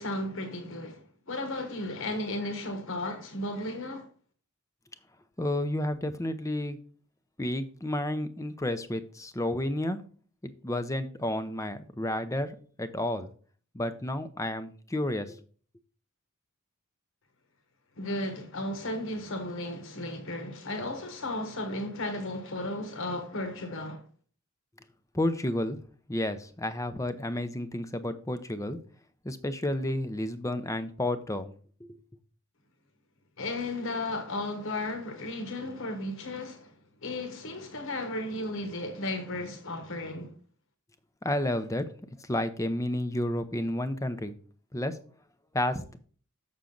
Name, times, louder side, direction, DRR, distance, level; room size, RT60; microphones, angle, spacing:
voice 1, 0.0-4.1 18.0-24.0 33.4-36.7 37.0-40.3, left 1 dB, 65° left, 1.2 m, -34 dB
voice 2, 5.4-6.8 7.4-10.0 10.4-13.3 13.7-15.4 25.1-25.8 26.1-28.8 29.2-31.5 31.8-32.0 41.2-41.8 42.2-44.3 44.7-45.0 45.5-46.0, left 1 dB, 15° left, 0.6 m, -31 dB
7.1 x 6.3 x 3.8 m
head